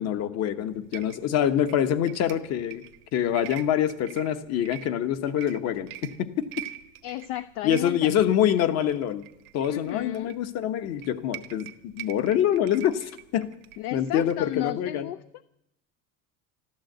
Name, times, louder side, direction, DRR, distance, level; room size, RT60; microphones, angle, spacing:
voice 1, 0.0-2.8 3.1-6.5 7.6-9.2 9.5-13.5 13.9-15.1, left 10 dB, 35° left, 11 dB, 1.1 m, -25 dB
sound 1, 0.6-14.7, right 17 dB, 85° right, 1.3 m, -45 dB
voice 2, 7.0-8.1 9.7-10.3 13.8-15.2, left 14 dB, 55° left, 14 dB, 0.6 m, -33 dB
14.0 x 12.5 x 7.9 m, 0.82 s
supercardioid pair, 150°, 43 cm